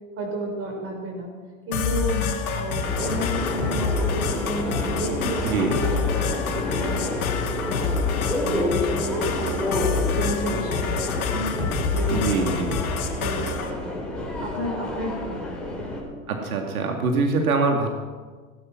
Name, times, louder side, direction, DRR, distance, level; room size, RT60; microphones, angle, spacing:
voice 1, 0.2-1.3 1.7-7.2 7.6-8.0 8.3-12.7 13.1-15.9, right 1 dB, 30° right, 2 dB, 5.8 m, -32 dB
sound 1, 1.7-13.7, left 5 dB, 90° left, 2.7 m, -27 dB
Subway metro underground, 2.9-16.0, left 2 dB, ahead, 5.1 m, -30 dB
voice 2, 5.4-5.7 12.1-12.7 16.3-17.9, right 4 dB, 90° right, 3 dB, 2.3 m, -23 dB
17.5 x 12.0 x 6.1 m, 1.5 s
hypercardioid pair, 120°, 42 cm